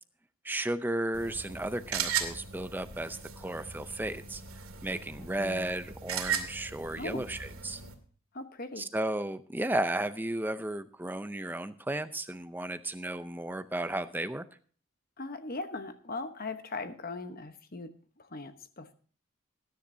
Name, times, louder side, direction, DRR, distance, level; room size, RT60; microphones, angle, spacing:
voice 1, 0.4-4.4 4.8-7.8 8.8-14.4, right 1 dB, 10° right, 12 dB, 0.5 m, -34 dB
sound 1, 1.1-7.9, right 8 dB, 75° right, 2.4 m, -37 dB
voice 2, 5.2-5.7 7.0-7.3 8.3-8.9 15.2-18.9, left 3 dB, 40° left, 9 dB, 1.0 m, -40 dB
19.5 x 10.5 x 2.7 m, 0.43 s
head